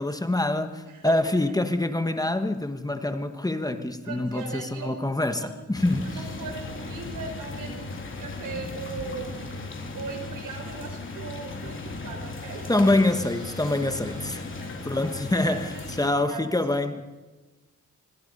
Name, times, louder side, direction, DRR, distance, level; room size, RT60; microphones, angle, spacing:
voice 1, 0.0-6.2 12.7-14.5 14.8-15.7 16.0-17.0, left 2 dB, 10° left, 1.4 m, -25 dB
voice 2, 0.9-1.2 4.0-5.0 5.3-5.5 6.0-12.7 14.5-14.8 15.0-16.5, right 4 dB, 85° right, 5.4 m, -39 dB
sound 1, 5.7-16.1, left 3 dB, 40° left, 3.6 m, -37 dB
sound 2, 11.3-15.8, right 1 dB, 15° right, 5.5 m, -53 dB
25.5 x 24.5 x 5.5 m
cardioid pair, 105°, 31 cm